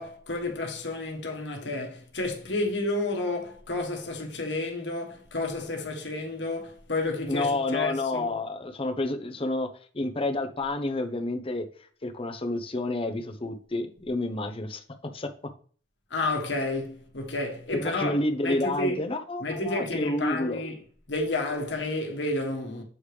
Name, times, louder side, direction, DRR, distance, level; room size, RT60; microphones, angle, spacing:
voice 1, 0.0-8.3 16.1-18.2 18.4-19.0 19.4-20.8 21.1-22.8, left 2 dB, 75° left, 1.4 m, -31 dB
voice 2, 7.3-9.7 9.9-11.6 12.0-14.8 15.1-15.3 17.7-20.6, left 2 dB, 30° left, 0.7 m, -29 dB
7.2 x 4.9 x 3.3 m
head